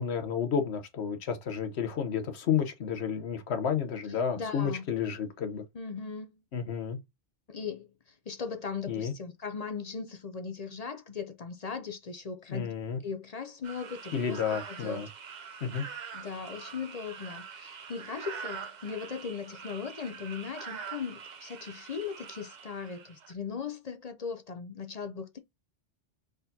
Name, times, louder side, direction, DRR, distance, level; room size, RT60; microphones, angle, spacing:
voice 1, 0.0-5.6 6.5-7.0 8.9-9.1 12.5-13.0 14.1-15.1 15.6-15.8, left 7 dB, 65° left, 1.1 m, -31 dB
voice 2, 4.3-4.8 5.7-6.4 7.5-12.7 13.0-15.0 16.1-25.4, left 5 dB, 45° left, 0.5 m, -38 dB
sound 1, 13.6-23.3, right 6 dB, 45° right, 0.6 m, -44 dB
4.7 x 3.9 x 2.7 m
omnidirectional pair, 1.2 m